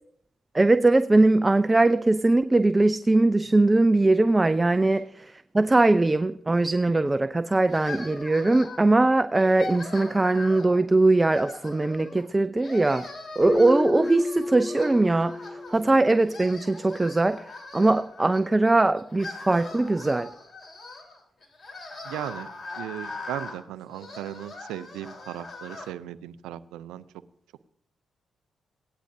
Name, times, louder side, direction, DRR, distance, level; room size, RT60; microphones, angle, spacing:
voice 1, 0.5-13.1 13.4-20.3, right 2 dB, 25° right, 0.5 m, -21 dB
sound 1, 7.7-9.0 9.3-10.8 11.3-12.2 12.6-15.8 16.1-18.4 18.9-25.9, left 3 dB, 45° left, 3.7 m, -41 dB
Keyboard (musical), 13.4-16.2, left 2 dB, 10° left, 3.9 m, -31 dB
voice 2, 22.0-22.5 22.8-27.0, right 12 dB, 90° right, 0.4 m, -37 dB
17.5 x 10.0 x 2.6 m
supercardioid pair, 45°, 0 cm